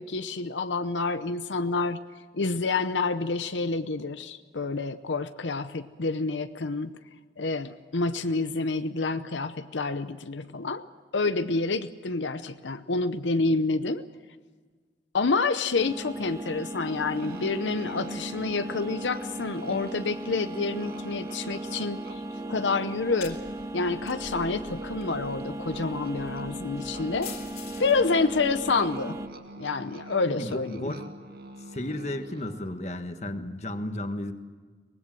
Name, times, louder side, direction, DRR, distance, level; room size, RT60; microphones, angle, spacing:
voice 1, 0.0-2.0 2.3-6.9 7.4-10.9 11.1-14.0 15.1-22.2 22.5-23.4 23.7-27.3 27.8-29.2 29.6-30.9, left 3 dB, 90° left, 10 dB, 0.8 m, -28 dB
sound 1, 15.8-29.3, right 1 dB, 20° right, 0.8 m, -37 dB
Musical instrument, 17.2-32.7, right 2 dB, 55° right, 2.3 m, -45 dB
sound 2, 23.0-29.4, left 5 dB, 55° left, 3.0 m, -47 dB
voice 2, 30.3-31.0 31.7-34.3, left 1 dB, 40° left, 7 dB, 1.5 m, -33 dB
24.0 x 19.5 x 7.6 m, 1.5 s
head